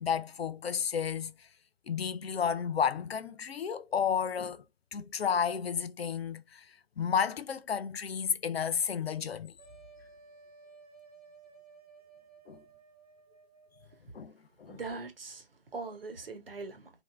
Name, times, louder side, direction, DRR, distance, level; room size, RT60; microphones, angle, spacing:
voice 1, 0.0-1.3 1.9-4.6 4.9-6.6 7.0-9.5 12.5-12.6 14.1-14.3 14.6-14.8, left 7 dB, 75° left, 0.5 m, -32 dB
sound 1, 9.6-14.0, right 5 dB, 40° right, 0.7 m, -56 dB
voice 2, 14.7-16.9, right 4 dB, 65° right, 0.9 m, -41 dB
3.0 x 2.5 x 2.3 m
figure-of-eight pair, 160°, 31 cm